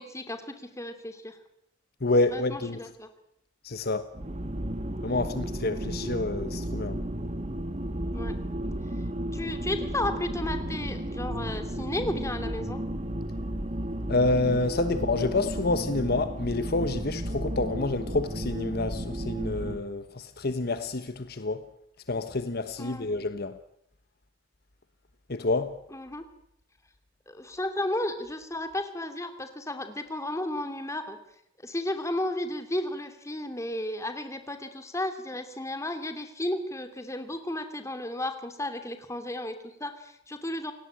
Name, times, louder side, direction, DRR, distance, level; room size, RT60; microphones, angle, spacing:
voice 1, 0.0-1.4 2.3-3.1 8.1-8.4 9.3-12.8 22.8-23.1 25.9-26.2 27.3-31.2 31.6-40.7, left 1 dB, 15° left, 2.8 m, -33 dB
voice 2, 2.0-2.8 3.6-4.1 5.0-7.0 14.1-21.6 22.1-23.6 25.3-25.8, left 2 dB, 55° left, 1.2 m, -28 dB
sound 1, 4.1-19.8, right 1 dB, 35° right, 1.6 m, -33 dB
29.0 x 18.0 x 8.9 m
head